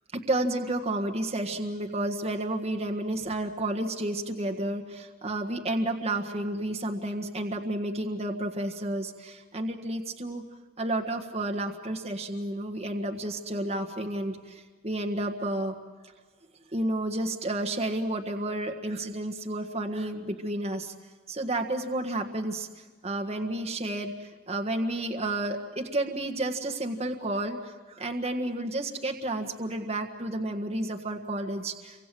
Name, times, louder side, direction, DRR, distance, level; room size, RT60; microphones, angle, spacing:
voice 1, 0.1-10.4 10.8-15.7 16.7-20.9 21.3-32.1, right 1 dB, 30° right, 3 dB, 1.6 m, -31 dB
29.5 x 24.5 x 7.7 m, 1.4 s
head